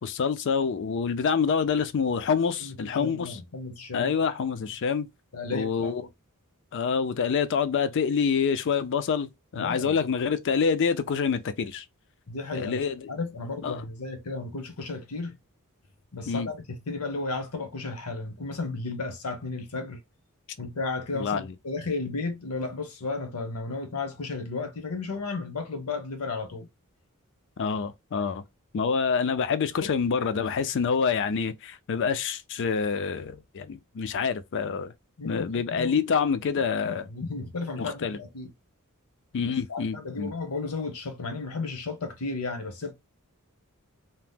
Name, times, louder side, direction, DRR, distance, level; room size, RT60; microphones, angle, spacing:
voice 1, 0.0-3.4 3.9-5.1 5.5-6.0 6.7-11.8 12.5-13.1 13.6-13.8 16.3-16.5 21.1-21.5 27.6-28.4 28.7-34.9 35.2-37.0 37.8-38.2 39.3-40.3, left 6 dB, 55° left, 0.4 m, -27 dB
voice 2, 2.6-4.1 5.3-5.9 9.5-10.0 12.3-12.8 13.1-15.4 16.1-16.6 16.9-20.0 20.6-26.7 35.2-36.3 36.8-38.5 39.7-42.9, left 3 dB, 75° left, 0.8 m, -34 dB
2.8 x 2.0 x 3.3 m
head